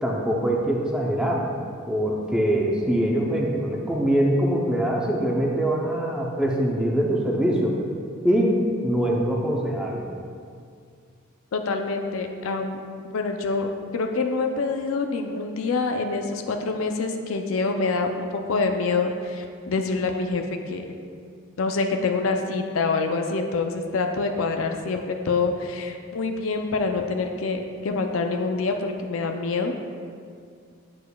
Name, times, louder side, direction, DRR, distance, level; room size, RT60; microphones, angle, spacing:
voice 1, 0.0-1.5 1.9-7.8 8.2-10.1, right 1 dB, 5° right, -2 dB, 0.6 m, -23 dB
voice 2, 11.5-12.8 13.1-20.8 21.6-29.8, left 3 dB, 75° left, 4 dB, 0.5 m, -26 dB
8.3 x 6.9 x 2.3 m, 2.2 s
head